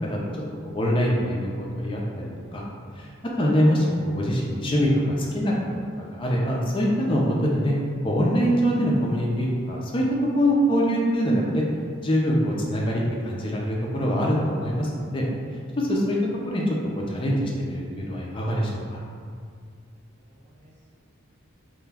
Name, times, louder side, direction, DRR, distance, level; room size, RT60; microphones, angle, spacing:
voice 1, 0.7-2.6 3.0-3.1 3.4-5.5 6.1-7.7 8.0-10.0 10.3-11.6 12.0-15.2 15.8-16.2 16.4-19.0, equal, 25° left, -3 dB, 0.3 m, -24 dB
voice 2, 2.8-3.2 20.1-20.9, right 1 dB, 35° right, -7 dB, 0.6 m, -55 dB
2.2 x 2.1 x 3.2 m, 2.2 s
head